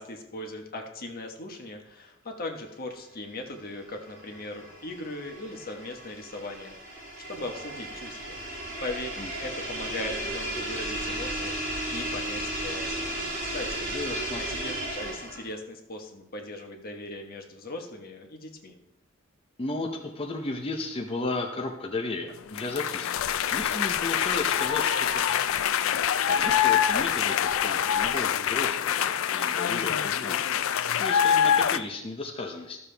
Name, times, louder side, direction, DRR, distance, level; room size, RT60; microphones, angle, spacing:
voice 1, 0.0-7.0 7.3-8.4 8.8-13.1 13.4-13.9 14.5-18.7, left 2 dB, 45° left, 3 dB, 1.3 m, -39 dB
sound 1, 3.6-15.5, right 1 dB, 45° right, 4.0 m, -34 dB
voice 2, 13.8-14.4 19.6-23.1 23.5-25.4 26.3-30.4 31.0-32.8, left 2 dB, 30° left, 1 dB, 0.7 m, -34 dB
sound 2, 22.6-31.8, left 9 dB, 75° left, 0.4 m, -25 dB
13.0 x 7.0 x 3.4 m, 0.89 s
head